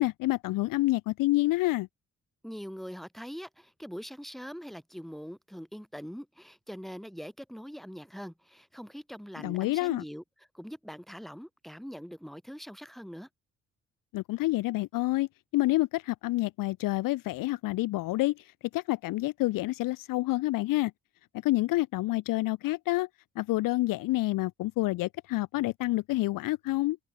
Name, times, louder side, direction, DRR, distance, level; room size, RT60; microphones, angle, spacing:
voice 1, 0.0-1.9 9.4-10.0 14.1-15.3 15.5-20.9 21.4-23.1 23.4-27.0, left 18 dB, 70° left, 0.5 m, -28 dB
voice 2, 2.4-10.2 10.5-13.3, equal, ahead, 6.7 m, -43 dB
supercardioid pair, 55°, 35 cm